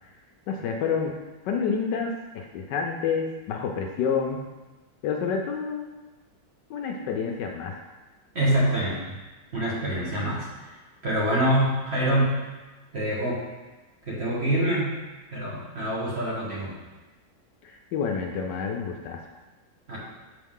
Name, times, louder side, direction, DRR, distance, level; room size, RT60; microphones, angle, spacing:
voice 1, 0.5-1.1 1.4-4.4 5.0-5.8 6.7-7.8 17.6-19.2, left 6 dB, 75° left, 2 dB, 1.1 m, -28 dB
voice 2, 8.3-9.1 9.5-10.7 11.0-12.4 12.9-13.4 14.1-15.0 15.3-16.7 19.9-20.0, right 1 dB, 40° right, -7 dB, 1.4 m, -25 dB
6.8 x 3.9 x 3.6 m, 1.2 s
omnidirectional pair, 2.1 m